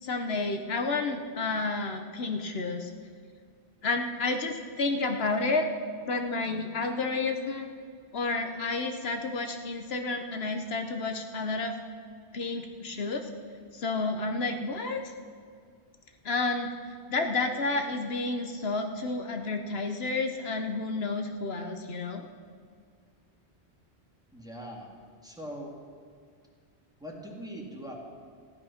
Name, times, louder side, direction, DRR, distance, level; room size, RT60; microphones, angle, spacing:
voice 1, 0.0-2.9 3.8-5.7 6.0-7.7 8.1-11.8 12.3-13.3 13.7-15.1 16.2-16.7 17.1-22.2, left 3 dB, 70° left, 5 dB, 1.1 m, -30 dB
voice 2, 24.3-24.9 25.2-25.7 27.0-28.0, equal, 5° right, -1 dB, 2.0 m, -41 dB
14.5 x 11.0 x 5.8 m, 2.2 s
omnidirectional pair, 1.1 m